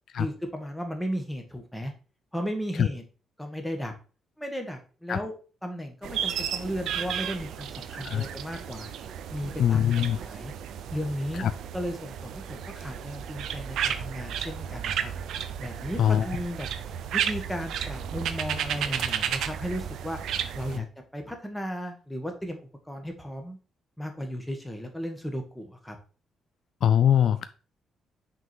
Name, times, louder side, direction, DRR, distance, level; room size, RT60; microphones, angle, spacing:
voice 1, 0.2-1.9 2.3-3.0 3.4-3.9 4.4-5.3 5.6-8.9 9.3-9.8 10.2-10.5 10.9-11.5 11.7-15.1 15.6-16.7 17.1-20.2 20.5-20.9 21.1-23.6 24.0-25.9, equal, 5° left, 4 dB, 1.6 m, -35 dB
sound 1, 6.0-20.8, right 9 dB, 75° right, 0.5 m, -33 dB
voice 2, 9.6-10.2 11.4-11.5 16.0-16.3 26.8-27.5, left 9 dB, 65° left, 12 dB, 0.4 m, -22 dB
5.9 x 3.7 x 4.5 m, 0.36 s
cardioid pair, 90°, 0 cm